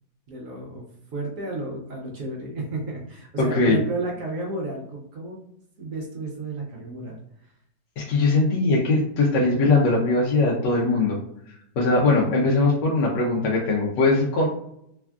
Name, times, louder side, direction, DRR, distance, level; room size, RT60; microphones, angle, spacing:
voice 1, 0.3-0.8 1.1-5.4 5.8-7.5, right 2 dB, 60° right, -2 dB, 0.9 m, -32 dB
voice 2, 3.4-3.8 8.0-11.2 11.8-14.5, left 3 dB, 90° left, -3 dB, 1.3 m, -20 dB
3.3 x 2.4 x 2.2 m, 0.74 s
omnidirectional pair, 1.9 m